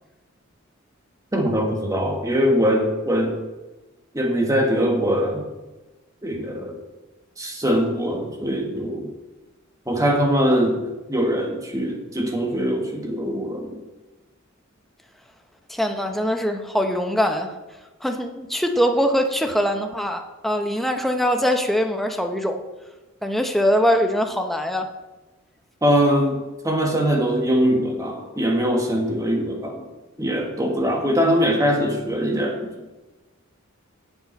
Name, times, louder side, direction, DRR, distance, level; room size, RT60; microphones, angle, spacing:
voice 1, 1.3-3.3 4.1-5.4 6.2-6.8 7.4-9.1 9.9-10.8 11.1-13.8 25.8-29.8 30.2-32.7, equal, 15° right, 2 dB, 1.5 m, -22 dB
voice 2, 15.7-17.6 18.0-22.6 23.2-24.9, equal, ahead, 4 dB, 0.7 m, -22 dB
10.5 x 7.1 x 4.5 m, 1.1 s
head